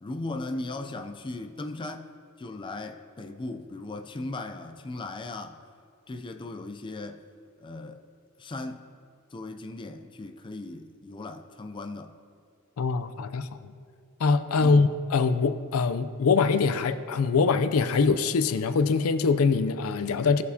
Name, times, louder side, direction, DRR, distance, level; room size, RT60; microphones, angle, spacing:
voice 1, 0.0-2.1 2.4-5.6 6.1-7.2 7.6-8.0 8.4-8.9 9.3-12.1 14.6-14.8, left 2 dB, 25° left, 0.4 m, -37 dB
voice 2, 12.8-13.7 14.2-20.4, left 4 dB, 85° left, 0.4 m, -23 dB
17.0 x 6.3 x 2.8 m
head